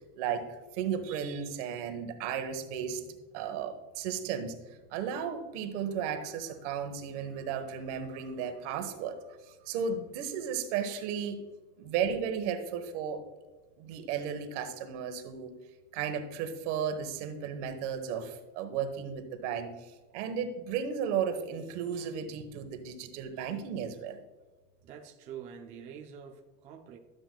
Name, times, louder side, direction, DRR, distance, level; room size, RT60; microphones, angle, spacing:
voice 1, 0.2-3.0 3.3-4.6 4.9-11.4 11.8-13.2 13.8-15.5 15.9-24.2, right 7 dB, 70° right, 8 dB, 1.2 m, -34 dB
voice 2, 24.8-27.0, right 8 dB, 20° right, 3 dB, 0.3 m, -46 dB
12.5 x 7.7 x 2.2 m, 1.2 s
cardioid pair, 180°, 36 cm